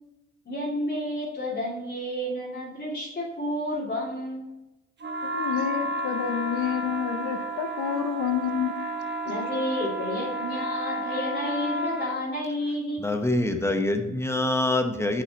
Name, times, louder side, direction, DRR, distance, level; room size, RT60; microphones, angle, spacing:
voice 1, 0.5-4.5 8.1-8.2 9.2-13.0, left 1 dB, 35° left, -5 dB, 2.5 m, -31 dB
sound 1, 5.0-12.2, right 1 dB, 35° right, 1.0 m, -32 dB
voice 2, 5.2-8.7 9.3-9.4, left 9 dB, 80° left, 9 dB, 0.8 m, -29 dB
voice 3, 13.0-15.2, left 2 dB, 10° left, 6 dB, 0.9 m, -25 dB
6.7 x 5.9 x 4.1 m, 0.97 s
cardioid pair, 90°, 30 cm